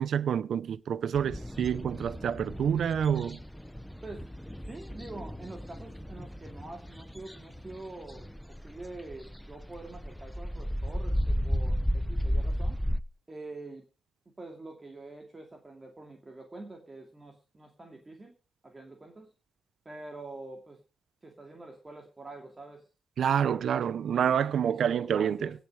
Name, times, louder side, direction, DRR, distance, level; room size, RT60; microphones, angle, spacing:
voice 1, 0.0-3.4 23.2-25.4, right 8 dB, 60° right, 0.7 m, -28 dB
sound 1, 1.1-13.0, equal, 5° left, 0.7 m, -34 dB
voice 2, 4.7-12.8 13.3-13.8 14.4-18.3 18.6-19.3 19.8-20.8 21.2-22.9 23.4-23.6 24.1-25.5, right 2 dB, 20° right, 2.5 m, -46 dB
18.0 x 6.8 x 6.3 m
cardioid pair, 130°, 0 cm